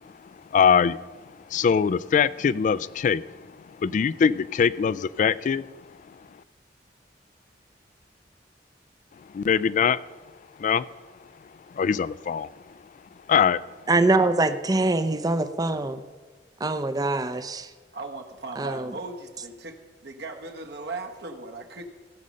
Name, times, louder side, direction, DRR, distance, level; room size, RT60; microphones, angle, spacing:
voice 1, 0.5-1.0 1.5-3.2 3.8-5.6 9.3-10.0 10.6-10.9 11.7-12.5 13.3-13.6, left 7 dB, 45° left, 19 dB, 0.3 m, -22 dB
voice 2, 13.9-16.0 16.6-17.7 18.6-18.9, right 2 dB, 20° right, 11 dB, 0.6 m, -24 dB
voice 3, 17.9-19.8 20.0-21.8, right 3 dB, 65° right, 4 dB, 1.3 m, -37 dB
16.5 x 5.5 x 6.4 m, 1.3 s
head